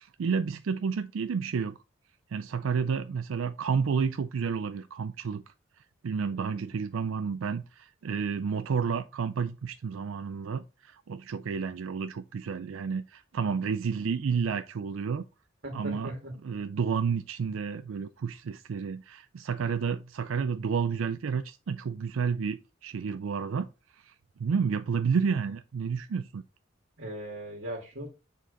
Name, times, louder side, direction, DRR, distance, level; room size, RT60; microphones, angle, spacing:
voice 1, 0.0-1.8 2.3-5.4 6.0-15.2 15.7-16.1 16.4-23.7 23.9-24.1 24.4-26.4, right 6 dB, 90° right, 0.4 m, -30 dB
voice 2, 6.3-6.8 15.6-16.3 27.0-28.1, right 1 dB, 60° right, 1.8 m, -39 dB
7.3 x 4.2 x 3.8 m
head